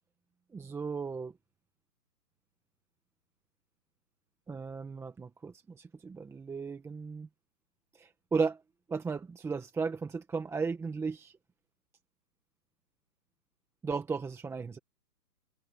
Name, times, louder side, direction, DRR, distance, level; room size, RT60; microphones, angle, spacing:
voice 1, 0.5-1.4 4.5-7.3 7.9-8.6 8.9-11.4 13.8-14.8, right 5 dB, 5° right, 1.5 m, -35 dB
hypercardioid pair, 150°, 48 cm